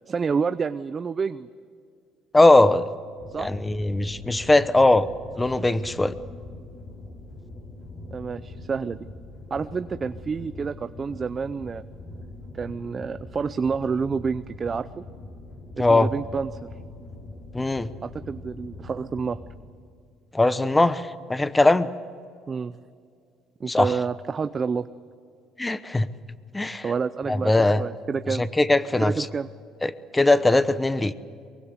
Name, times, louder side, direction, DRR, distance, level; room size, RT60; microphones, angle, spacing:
voice 1, 0.1-1.5 3.3-3.5 8.1-9.0 9.5-11.8 12.5-15.0 15.8-16.7 18.0-19.4 22.5-22.8 23.6-24.9 26.8-28.5 29.1-29.5, right 5 dB, 30° right, 12 dB, 0.6 m, -28 dB
voice 2, 2.3-2.9 3.4-5.1 5.4-6.1 15.8-16.1 17.5-17.9 20.3-21.9 23.7-23.9 25.6-26.1 26.5-26.8 27.3-27.8 28.3-29.3 29.8-31.1, left 2 dB, 10° left, 14 dB, 1.0 m, -20 dB
sound 1, 3.2-19.6, left 2 dB, 40° left, 6.3 m, -42 dB
23.5 x 23.0 x 8.2 m, 2.3 s
cardioid pair, 115°, 0 cm